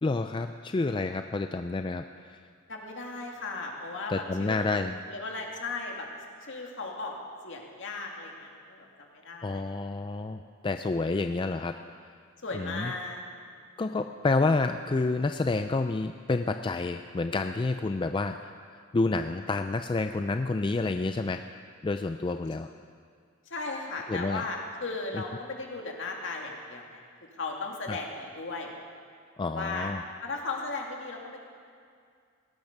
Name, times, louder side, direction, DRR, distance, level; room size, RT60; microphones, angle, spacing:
voice 1, 0.0-2.4 4.1-4.9 9.4-11.7 12.5-12.9 13.8-21.4 21.8-22.7 24.1-24.4 25.1-25.2 27.9-28.0 29.4-30.0, left 3 dB, 25° left, 7 dB, 0.3 m, -29 dB
voice 2, 2.7-6.1 6.5-7.2 7.4-9.7 12.4-13.2 23.5-27.0 27.4-28.7 29.5-29.9 30.2-31.4, left 3 dB, 65° left, 0 dB, 2.3 m, -36 dB
18.0 x 10.5 x 6.6 m, 2.2 s
head